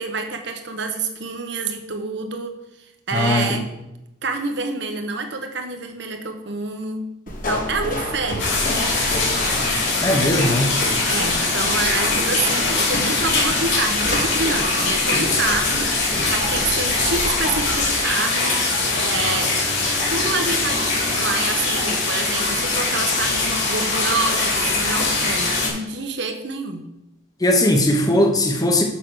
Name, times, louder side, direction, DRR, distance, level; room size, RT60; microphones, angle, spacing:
voice 1, 0.0-2.5 3.1-3.7 4.2-8.6 11.1-18.6 19.0-19.6 20.1-26.8, right 3 dB, 60° right, 6 dB, 1.0 m, -27 dB
voice 2, 3.1-3.6 10.0-10.8 15.1-15.3 27.4-28.8, left 1 dB, 20° left, 3 dB, 1.0 m, -19 dB
sound 1, 7.3-18.0, left 1 dB, 40° left, 1.3 m, -30 dB
sound 2, 8.4-25.7, left 3 dB, 65° left, 3.4 m, -22 dB
Bowed string instrument, 19.1-23.1, right 1 dB, 10° right, 0.6 m, -39 dB
7.3 x 5.8 x 6.3 m, 0.91 s
head